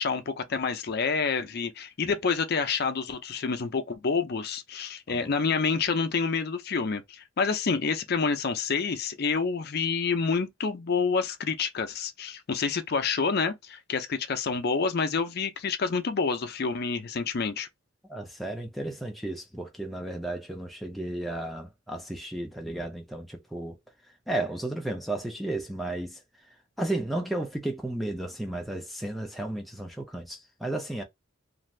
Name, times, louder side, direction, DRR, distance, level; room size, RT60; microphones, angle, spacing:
voice 1, 0.0-17.7, left 5 dB, 50° left, 0.5 m, -28 dB
voice 2, 18.1-23.8 24.3-31.0, right 1 dB, ahead, 0.4 m, -33 dB
2.6 x 2.4 x 3.2 m
head